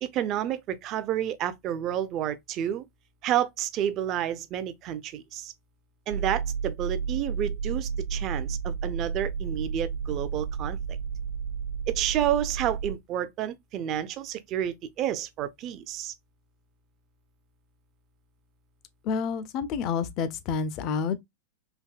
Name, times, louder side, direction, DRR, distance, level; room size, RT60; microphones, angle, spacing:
voice 1, 0.0-2.8 3.2-5.5 6.1-10.8 11.9-16.1, right 11 dB, 35° right, 0.4 m, -30 dB
sound 1, 6.1-13.0, right 6 dB, 80° right, 0.6 m, -32 dB
voice 2, 19.0-21.2, left 6 dB, 40° left, 0.4 m, -29 dB
3.4 x 2.7 x 2.2 m
figure-of-eight pair, 90°, 0 cm